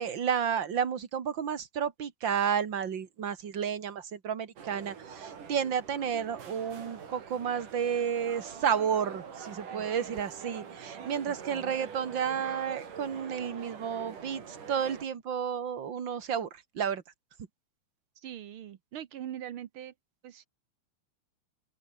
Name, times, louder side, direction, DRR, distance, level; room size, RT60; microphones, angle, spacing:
voice 1, 0.0-16.5 16.7-17.0, right 8 dB, 40° right, 2.1 m, -31 dB
sound 1, 4.6-15.1, right 6 dB, 80° right, 5.0 m, -45 dB
voice 2, 9.6-10.2 11.2-11.7 18.1-19.9 20.2-20.5, right 11 dB, 60° right, 1.4 m, -43 dB
open air
omnidirectional pair, 3.6 m